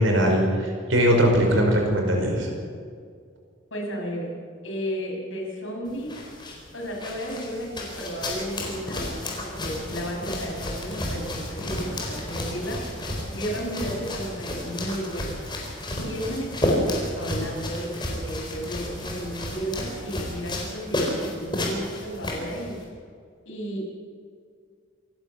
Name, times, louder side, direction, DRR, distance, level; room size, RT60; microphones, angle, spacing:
voice 1, 0.0-2.5, equal, 75° right, 1 dB, 5.3 m, -20 dB
voice 2, 3.7-4.4 4.6-6.2 6.7-13.0 13.3-15.3 16.0-22.8 23.4-23.9, equal, 70° left, -1 dB, 6.6 m, -33 dB
sound 1, 5.9-22.8, left 1 dB, 25° left, 4.3 m, -31 dB
27.0 x 12.0 x 8.4 m, 2.1 s
head